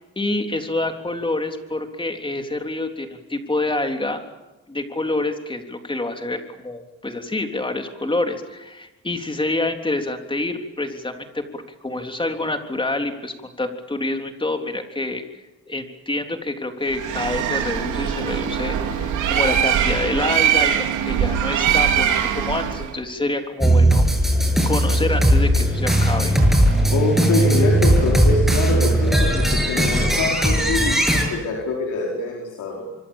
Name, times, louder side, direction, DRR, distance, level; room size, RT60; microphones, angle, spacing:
voice 1, 0.0-4.2 4.7-15.2 15.7-24.0 24.7-26.3, left 2 dB, 15° left, 5 dB, 3.5 m, -27 dB
Bird, 16.9-22.9, right 9 dB, 80° right, 3.4 m, -22 dB
sound 1, 23.6-31.2, right 1 dB, ahead, 7.6 m, -18 dB
voice 2, 26.9-32.8, left 4 dB, 80° left, -2 dB, 5.0 m, -24 dB
25.5 x 24.5 x 7.4 m, 1.1 s
cardioid pair, 90°, 30 cm